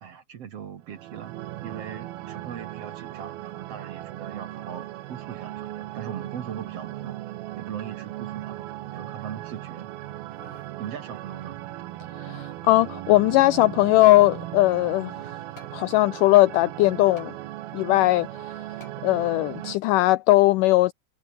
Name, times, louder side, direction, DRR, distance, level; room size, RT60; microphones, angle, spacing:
voice 1, 0.0-1.3 1.6-7.2 7.6-8.7 8.9-9.9 10.8-11.6, right 8 dB, 55° right, 2.0 m, -39 dB
sound 1, 0.8-19.8, right 15 dB, 80° right, 2.9 m, -38 dB
sound 2, 10.1-10.7 11.2-11.3 12.0-12.6 13.6-14.4 15.6-15.8 17.2-17.3 18.8-19.0 19.6-19.7, left 4 dB, 55° left, 6.8 m, -51 dB
voice 2, 12.2-15.1 15.7-17.3 17.7-18.5 19.0-20.9, left 18 dB, 90° left, 1.8 m, -19 dB
omnidirectional pair, 4.3 m